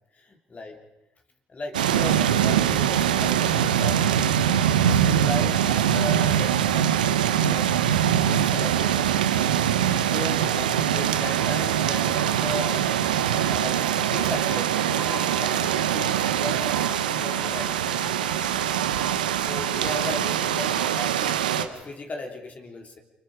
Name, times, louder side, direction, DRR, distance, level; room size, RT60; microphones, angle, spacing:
voice 1, 0.2-0.8 1.5-4.4 4.7-7.7 8.2-9.6 10.1-12.9 13.5-18.6 19.4-23.0, left 2 dB, 35° left, 2 dB, 3.2 m, -37 dB
sound 1, 1.7-21.7, right 9 dB, 85° right, 1.0 m, -23 dB
sound 2, 11.0-21.1, right 3 dB, 25° right, 2.0 m, -40 dB
30.0 x 25.0 x 5.0 m, 0.91 s
hypercardioid pair, 55°, 4 cm